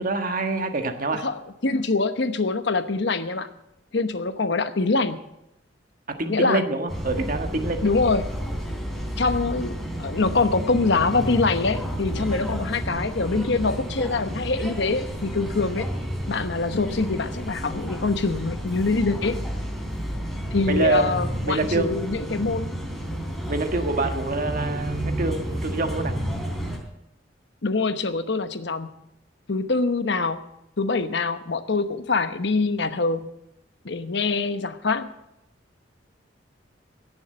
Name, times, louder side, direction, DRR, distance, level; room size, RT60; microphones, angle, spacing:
voice 1, 0.0-1.3 6.2-7.9 20.6-22.1 23.5-26.1, right 2 dB, 50° right, 6 dB, 1.5 m, -26 dB
voice 2, 1.2-3.5 3.9-5.2 6.3-6.6 7.8-8.3 9.2-15.9 16.3-19.4 20.5-22.8 27.6-28.9 29.5-30.4 30.8-33.3 33.8-35.1, left 3 dB, 65° left, 10 dB, 1.0 m, -24 dB
sound 1, 6.9-26.8, equal, ahead, 3.8 m, -31 dB
17.0 x 7.2 x 7.7 m, 0.85 s
head